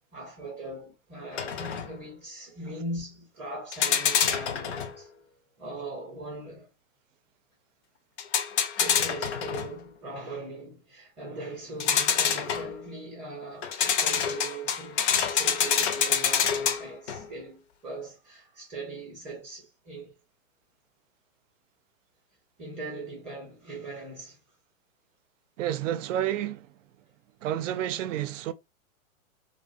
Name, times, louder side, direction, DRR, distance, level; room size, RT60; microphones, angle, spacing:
voice 1, 0.1-5.1 5.6-6.7 8.7-20.1 22.6-24.4, right 2 dB, 15° right, 0.6 m, -40 dB
sound 1, 1.3-1.9 3.7-5.0 8.2-9.8 11.8-12.8 13.6-17.3, left 7 dB, 55° left, 0.5 m, -26 dB
voice 2, 25.6-26.7 27.4-28.5, right 11 dB, 65° right, 0.5 m, -30 dB
2.4 x 2.1 x 2.4 m
hypercardioid pair, 140°, 42 cm